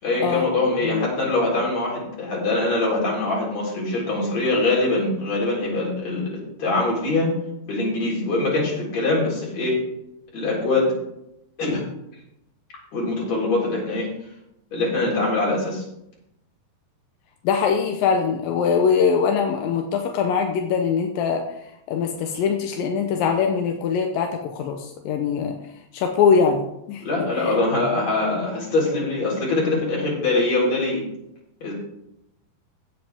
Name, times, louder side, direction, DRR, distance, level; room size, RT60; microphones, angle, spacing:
voice 1, 0.0-7.3 7.6-9.8 10.3-10.9 11.6-11.8 12.9-14.1 14.7-15.8 27.0-31.0 31.6-31.7, left 2 dB, 40° left, -4 dB, 5.0 m, -23 dB
voice 2, 17.4-21.5 21.9-25.6 25.9-27.0 27.4-27.5, left 6 dB, 75° left, 4 dB, 2.2 m, -22 dB
16.0 x 7.8 x 3.5 m, 0.82 s
omnidirectional pair, 4.9 m